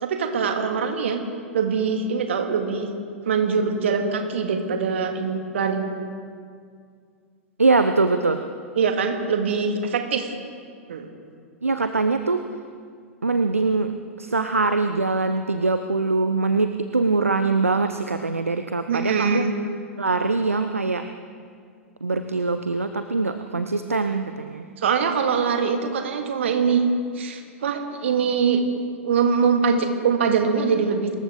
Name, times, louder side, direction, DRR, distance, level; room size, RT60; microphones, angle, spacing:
voice 1, 0.0-1.2 1.5-2.9 3.3-5.8 8.8-10.3 10.9-11.1 18.9-19.5 24.8-26.8 27.2-28.6 29.0-31.1, right 6 dB, 60° right, 5 dB, 2.1 m, -23 dB
voice 2, 7.6-8.4 11.6-12.4 13.2-13.9 14.2-19.5 20.0-21.0 22.0-24.6, right 3 dB, 80° right, 9 dB, 0.7 m, -22 dB
25.5 x 14.0 x 3.8 m, 2.1 s
figure-of-eight pair, 95°, 7 cm